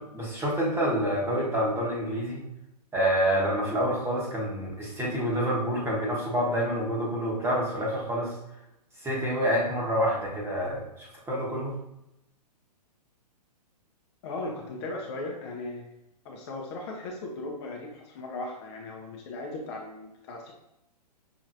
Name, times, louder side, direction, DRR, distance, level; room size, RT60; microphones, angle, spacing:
voice 1, 0.0-2.4 2.9-8.4 9.0-11.7, equal, 10° right, -4 dB, 1.2 m, -27 dB
voice 2, 14.2-15.9 16.2-20.5, left 2 dB, 40° left, 0 dB, 0.8 m, -37 dB
6.1 x 3.1 x 2.6 m, 0.87 s
hypercardioid pair, 125°, 21 cm